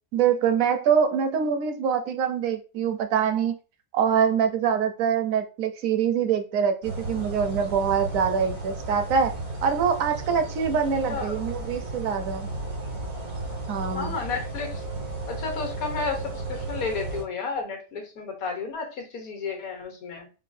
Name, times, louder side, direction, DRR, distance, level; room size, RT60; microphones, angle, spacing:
voice 1, 0.1-3.5 3.9-9.3 9.6-12.5 13.7-14.2, right 7 dB, 70° right, 7 dB, 1.0 m, -24 dB
sound 1, 6.8-17.2, right 2 dB, 85° right, 2.5 m, -34 dB
voice 2, 13.9-14.8 15.3-20.3, left 4 dB, 75° left, 2 dB, 1.4 m, -32 dB
4.7 x 2.3 x 2.5 m, 0.32 s
omnidirectional pair, 1.5 m